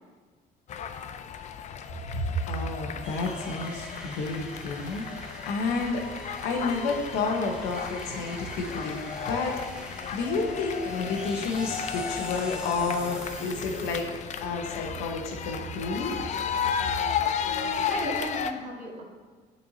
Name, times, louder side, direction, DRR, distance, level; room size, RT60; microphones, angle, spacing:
sound 1, 0.7-18.5, left 7 dB, 45° left, 0.4 m, -34 dB
voice 1, 2.1-6.1 6.4-9.0 9.3-9.6 10.1-14.1 14.4-16.1, left 3 dB, 90° left, 2 dB, 1.0 m, -30 dB
sound 2, 3.0-14.0, equal, 5° right, 0.8 m, -42 dB
voice 2, 17.5-19.1, right 2 dB, 50° right, -2 dB, 1.5 m, -36 dB
8.7 x 4.3 x 2.8 m, 1.4 s
cardioid pair, 110°, 17 cm